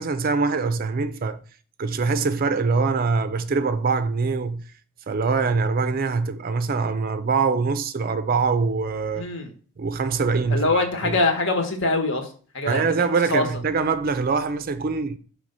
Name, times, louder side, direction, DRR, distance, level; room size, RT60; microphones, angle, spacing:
voice 1, 0.0-1.4 1.8-4.6 5.1-9.3 9.8-10.6 11.0-11.2 12.6-15.2, right 4 dB, 40° right, 0.4 m, -23 dB
voice 2, 9.1-9.5 10.5-12.3 12.5-12.8 13.3-13.5, left 2 dB, 60° left, 1.3 m, -23 dB
6.3 x 3.4 x 5.4 m
head